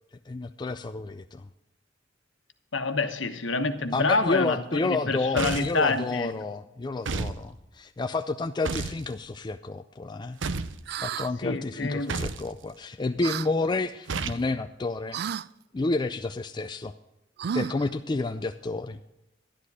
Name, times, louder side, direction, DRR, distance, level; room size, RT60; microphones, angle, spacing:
voice 1, 0.3-1.5 3.9-10.4 11.0-15.2 15.7-16.9 17.5-19.0, left 3 dB, 25° left, 8 dB, 0.4 m, -30 dB
voice 2, 2.7-6.4 11.4-12.2, left 3 dB, 85° left, 8 dB, 1.2 m, -27 dB
sound 1, 5.4-5.8 7.0-7.4 8.6-9.0 10.4-10.8 12.1-12.5 14.1-14.5, right 4 dB, 90° right, 0.7 m, -31 dB
sound 2, 10.9-11.3 13.2-13.5 15.1-15.5 17.4-17.9, right 8 dB, 60° right, 0.3 m, -31 dB
11.5 x 11.0 x 4.8 m, 0.91 s
head